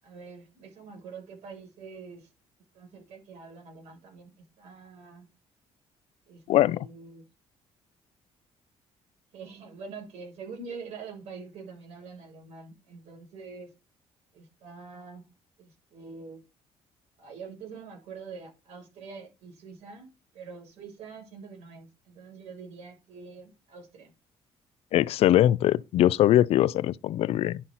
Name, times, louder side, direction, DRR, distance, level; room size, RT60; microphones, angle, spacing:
voice 1, 0.0-2.3 2.7-4.3 4.6-5.3 6.3-7.2 9.3-13.7 14.3-15.2 15.6-16.4 17.2-24.1, right 5 dB, 80° right, 7.0 m, -45 dB
voice 2, 6.5-6.9 24.9-27.6, left 13 dB, 65° left, 0.4 m, -22 dB
11.0 x 5.9 x 4.0 m
cardioid pair, 155°, 11 cm